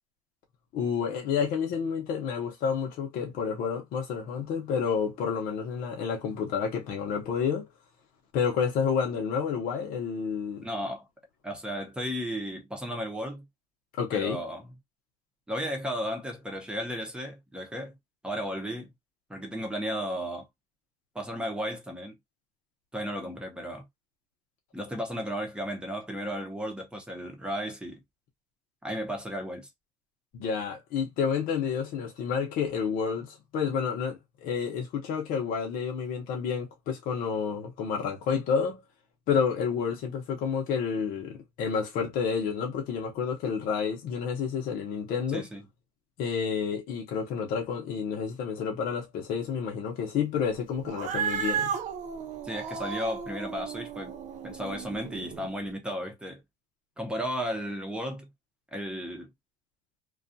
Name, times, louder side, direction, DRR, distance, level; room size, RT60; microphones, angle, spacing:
voice 1, 0.7-7.7 8.3-10.6 14.0-14.4 30.3-38.8 39.3-45.5 46.2-51.7, left 6 dB, 65° left, 0.8 m, -30 dB
voice 2, 10.6-11.1 11.4-13.4 14.1-14.6 15.5-18.0 18.2-18.9 19.3-20.5 21.1-22.2 22.9-23.8 24.7-28.0 28.8-29.7 45.3-45.6 52.4-54.1 54.4-56.4 57.0-58.3 58.7-59.3, equal, 5° right, 0.8 m, -34 dB
Cat, 50.8-55.5, right 7 dB, 50° right, 0.7 m, -34 dB
2.4 x 2.3 x 2.6 m
cardioid pair, 120°, 16 cm